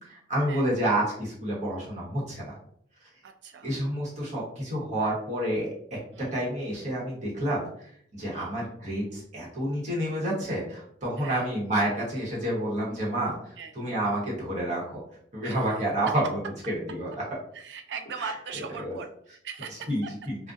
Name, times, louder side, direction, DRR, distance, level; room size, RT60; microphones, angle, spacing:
voice 1, 0.0-2.5 3.6-6.0 6.3-15.0 15.3-16.4 16.7-17.2 18.2-18.3 18.8-19.0 19.9-20.4, right 1 dB, 40° right, -6 dB, 1.0 m, -29 dB
voice 2, 3.2-3.7 6.1-6.3 8.3-8.5 11.2-11.5 13.6-13.7 15.4-15.6 17.5-20.1, right 6 dB, 75° right, 5 dB, 0.3 m, -40 dB
2.4 x 2.1 x 2.4 m, 0.66 s
head